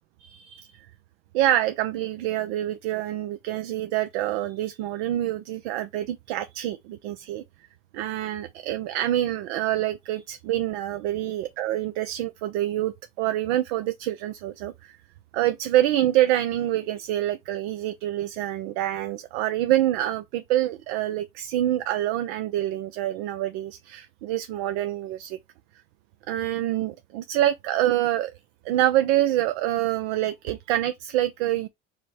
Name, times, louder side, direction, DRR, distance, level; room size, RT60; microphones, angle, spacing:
voice 1, 0.2-0.9 1.3-7.4 7.9-15.0 15.3-25.4 26.3-28.3 28.6-31.7, right 13 dB, 75° right, 0.5 m, -26 dB
4.9 x 2.1 x 4.8 m
hypercardioid pair, 75°, 30 cm